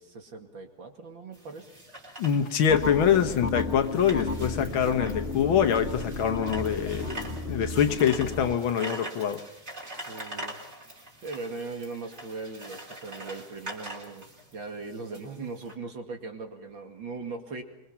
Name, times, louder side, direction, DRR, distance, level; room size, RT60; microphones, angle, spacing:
voice 1, 0.0-1.7 3.1-3.4 4.1-4.5 10.0-10.6 11.2-14.3 14.5-17.6, right 4 dB, 65° right, 4 dB, 2.9 m, -39 dB
sound 1, 1.3-15.8, right 1 dB, 30° right, 3.8 m, -43 dB
voice 2, 2.2-7.1 7.5-9.4, left 8 dB, 75° left, 8 dB, 2.0 m, -24 dB
sound 2, 2.7-8.5, left 3 dB, 30° left, 1.7 m, -33 dB
25.5 x 23.0 x 5.8 m, 0.88 s
omnidirectional pair, 2.2 m